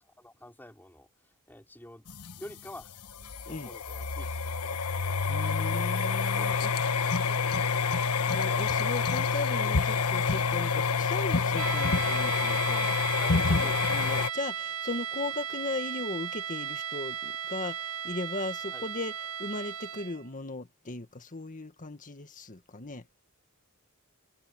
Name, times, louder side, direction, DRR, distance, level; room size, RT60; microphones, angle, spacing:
voice 1, 0.2-1.1 1.5-2.1 2.4-3.0 3.4-4.9 6.4-6.7 13.2-13.9 18.7-18.8, left 1 dB, 10° left, 4.5 m, -48 dB
sound 1, 2.1-14.3, left 5 dB, 80° left, 1.3 m, -28 dB
voice 2, 5.3-6.7 8.3-12.9 13.5-19.1 19.4-23.2, left 2 dB, 35° left, 1.7 m, -37 dB
sound 2, 11.5-20.3, right 8 dB, 65° right, 1.5 m, -36 dB
head